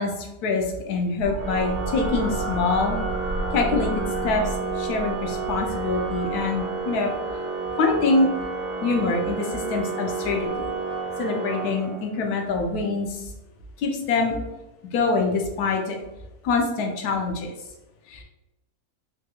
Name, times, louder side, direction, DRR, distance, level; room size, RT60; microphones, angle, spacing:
voice 1, 0.0-3.0 3.5-7.1 7.8-8.3 8.8-10.7 11.2-13.3 13.8-14.4 14.9-16.0 16.4-17.5 18.1-18.2, left 3 dB, 85° left, 2 dB, 1.1 m, -25 dB
sound 1, 1.2-7.0 8.2-8.7 10.5-10.6, right 2 dB, 55° left, 1.9 m, -33 dB
Organ, 1.4-12.3, right 4 dB, 80° right, 1.1 m, -30 dB
3.4 x 2.3 x 2.8 m, 0.97 s
omnidirectional pair, 1.6 m